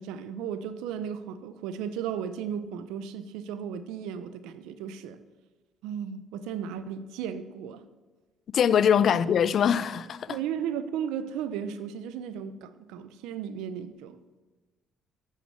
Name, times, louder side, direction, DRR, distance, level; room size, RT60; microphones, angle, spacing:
voice 1, 0.0-5.2 5.8-7.8 10.3-14.2, right 8 dB, 85° right, 0.6 m, -35 dB
voice 2, 8.5-10.4, left 8 dB, 60° left, 0.4 m, -23 dB
7.0 x 6.4 x 6.6 m
supercardioid pair, 75°, 0 cm